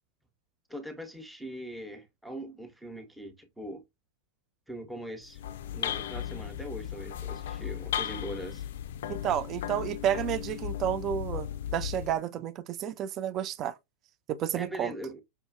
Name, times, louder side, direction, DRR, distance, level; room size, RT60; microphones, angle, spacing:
voice 1, 0.7-3.8 4.7-5.4 5.7-8.7 14.5-15.2, equal, 5° right, 0.8 m, -41 dB
sound 1, 5.2-12.2, left 10 dB, 55° left, 0.3 m, -36 dB
voice 2, 9.1-13.7 14.3-14.9, right 10 dB, 35° right, 0.3 m, -31 dB
5.4 x 2.3 x 2.5 m
figure-of-eight pair, 90°, 0 cm